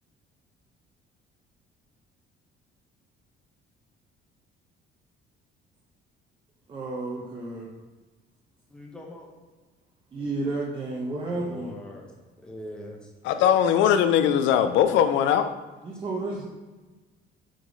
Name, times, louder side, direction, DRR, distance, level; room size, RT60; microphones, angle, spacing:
voice 1, 6.7-7.7 10.1-11.7 15.8-16.4, right 2 dB, 25° right, -3 dB, 0.8 m, -31 dB
voice 2, 8.7-9.3 11.3-13.1, left 1 dB, 5° left, 0 dB, 0.8 m, -42 dB
voice 3, 13.2-15.5, left 9 dB, 85° left, 10 dB, 0.4 m, -20 dB
5.0 x 4.8 x 3.9 m, 1.2 s
cardioid pair, 150°, 19 cm